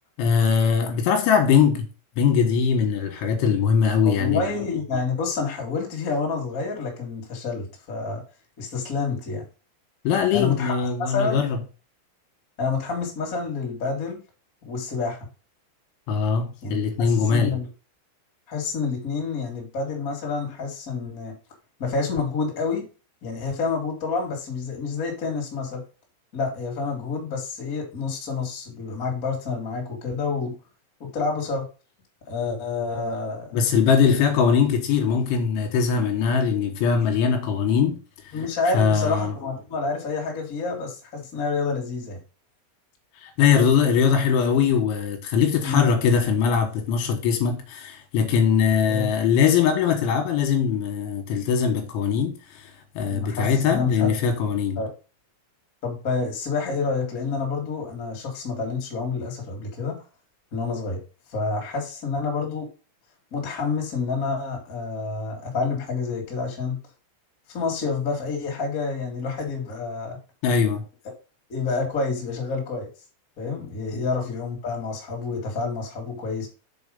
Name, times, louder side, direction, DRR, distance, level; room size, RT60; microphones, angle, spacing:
voice 1, 0.2-1.9 2.2-4.4 10.1-11.6 16.1-17.6 33.5-38.4 38.7-39.3 43.2-54.8 70.4-70.8 73.9-74.1, left 6 dB, 75° left, 3.5 m, -21 dB
voice 2, 4.0-8.2 8.6-9.4 10.3-10.7 11.1-11.4 12.6-14.2 14.6-15.2 16.6-16.8 17.1-17.7 18.5-21.4 21.8-22.9 23.2-25.8 26.3-30.5 31.0-31.7 32.3-33.5 38.3-42.2 45.6-45.9 48.9-49.1 53.1-54.2 54.8-54.9 55.8-60.0 60.5-61.0 61.3-62.7 63.3-66.8 67.5-70.2 71.0-71.2 71.5-72.9 73.4-76.5, left 4 dB, 30° left, 1.7 m, -28 dB
7.0 x 4.8 x 5.4 m
omnidirectional pair, 5.8 m